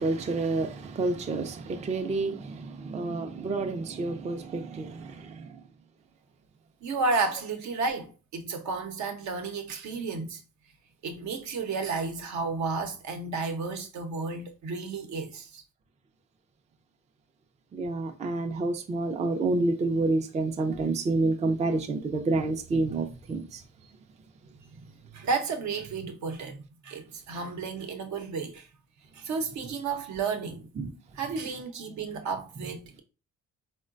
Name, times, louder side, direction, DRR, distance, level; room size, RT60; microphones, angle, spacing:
voice 1, 0.0-5.6 17.7-23.6 30.8-30.9, right 3 dB, 25° right, 0.4 m, -29 dB
voice 2, 6.8-10.4 11.0-15.6 25.0-26.6 26.8-28.7 29.1-30.7 31.1-33.0, right 4 dB, 70° right, 0.7 m, -32 dB
3.7 x 2.2 x 2.4 m
cardioid pair, 90°, 30 cm